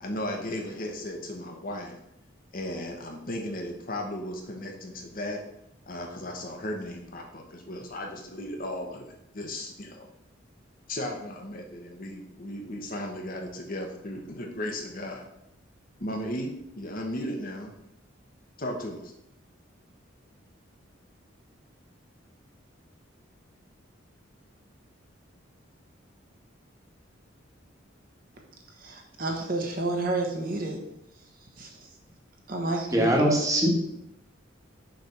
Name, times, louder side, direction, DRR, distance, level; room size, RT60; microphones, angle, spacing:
voice 1, 0.0-2.0 2.5-5.4 5.9-10.0 10.9-15.2 16.0-17.7 18.6-19.1, left 1 dB, 45° left, 2 dB, 1.0 m, -35 dB
voice 2, 28.8-30.8 31.6-31.9 32.5-33.3, right 2 dB, 45° right, 1 dB, 1.1 m, -30 dB
voice 3, 32.9-33.7, right 1 dB, 15° right, -1 dB, 1.4 m, -22 dB
6.4 x 3.4 x 5.8 m, 0.82 s
head